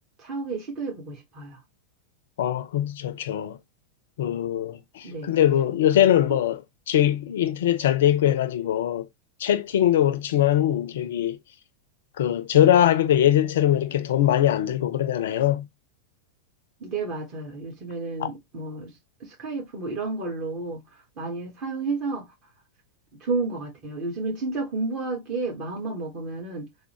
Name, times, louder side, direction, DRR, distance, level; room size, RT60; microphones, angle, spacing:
voice 1, 0.2-1.6 5.0-5.3 16.8-18.9 19.2-20.8 21.2-22.3 23.2-26.7, right 3 dB, 35° right, 1.5 m, -31 dB
voice 2, 2.4-3.6 4.2-6.6 6.9-9.1 9.4-11.4 12.2-15.7, left 11 dB, 60° left, 0.5 m, -22 dB
3.5 x 2.2 x 2.9 m
figure-of-eight pair, 90°, 0 cm